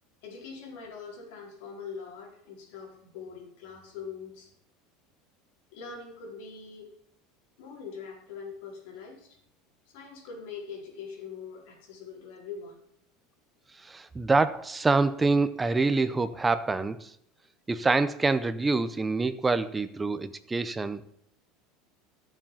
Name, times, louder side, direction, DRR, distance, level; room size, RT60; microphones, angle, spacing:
voice 1, 0.2-4.5 5.7-6.9 7.6-9.4 9.9-12.8, left 5 dB, 70° left, 1 dB, 4.5 m, -43 dB
voice 2, 13.8-17.1 17.7-21.1, right 3 dB, 10° right, 12 dB, 0.6 m, -26 dB
13.0 x 7.4 x 7.3 m, 0.71 s
cardioid pair, 170°, 0 cm